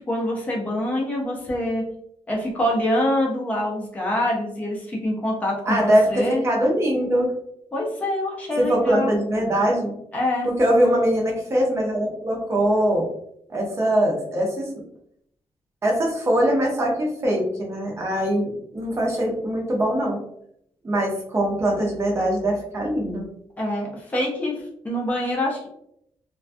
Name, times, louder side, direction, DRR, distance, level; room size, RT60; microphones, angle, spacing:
voice 1, 0.0-1.8 2.3-6.4 7.7-9.1 10.1-10.5 23.6-24.5 24.8-25.7, left 1 dB, 15° left, -2 dB, 0.5 m, -25 dB
voice 2, 5.7-7.3 8.6-9.9 10.4-13.1 13.5-14.7 15.8-20.2 20.8-23.2, right 1 dB, 25° right, -2 dB, 0.6 m, -22 dB
2.2 x 2.2 x 2.5 m, 0.71 s
wide cardioid pair, 170°, 11 cm